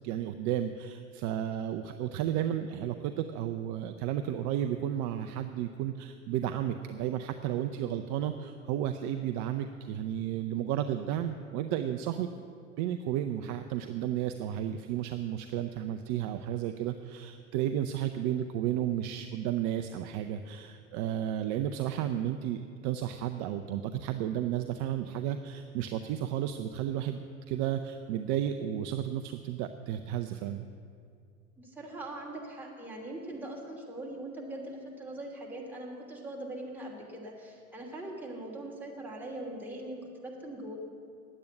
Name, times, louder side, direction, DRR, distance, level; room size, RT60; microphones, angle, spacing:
voice 1, 0.0-12.3 12.8-27.2 27.5-30.6, right 11 dB, 45° right, 7 dB, 0.6 m, -33 dB
voice 2, 31.6-40.8, right 1 dB, 5° right, -3 dB, 2.8 m, -41 dB
9.9 x 8.6 x 9.2 m, 2.4 s
hypercardioid pair, 90°, 42 cm